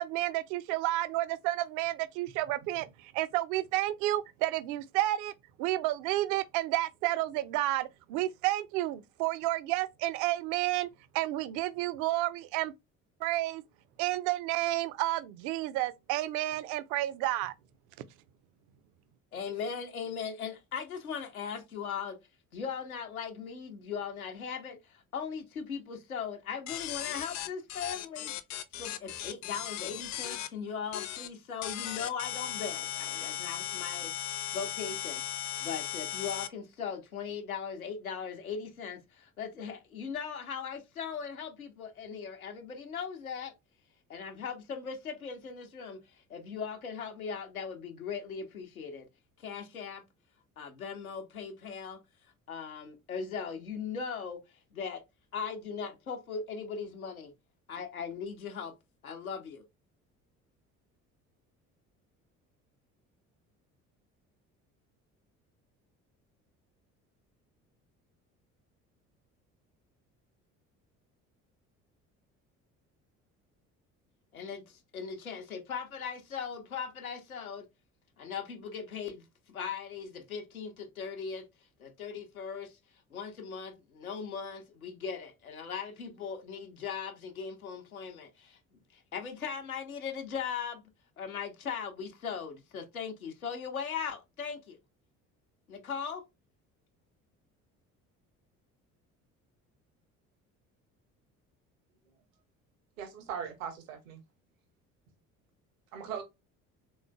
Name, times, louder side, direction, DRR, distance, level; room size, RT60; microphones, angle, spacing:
voice 1, 0.0-5.3 5.6-10.9 11.1-12.7 13.2-13.6 14.0-17.5, right 16 dB, 50° right, 0.5 m, -31 dB
voice 2, 19.3-22.2 22.5-28.3 28.7-34.1 34.5-35.2 35.6-43.5 44.1-46.0 46.3-49.0 49.4-50.0 50.6-52.0 52.5-54.4 54.7-55.0 55.3-57.3 57.7-58.7 59.0-59.6 74.3-77.7 78.2-81.5 81.8-82.8 83.1-88.6 88.9-90.8 91.2-94.8 95.7-96.2, left 6 dB, 80° left, 0.7 m, -39 dB
sound 1, 26.7-30.5 30.9-31.3 31.6-36.5, left 12 dB, 45° left, 0.6 m, -37 dB
voice 3, 103.0-104.2 105.9-106.2, right 8 dB, 65° right, 1.0 m, -39 dB
3.6 x 3.1 x 2.2 m
figure-of-eight pair, 55°, 42 cm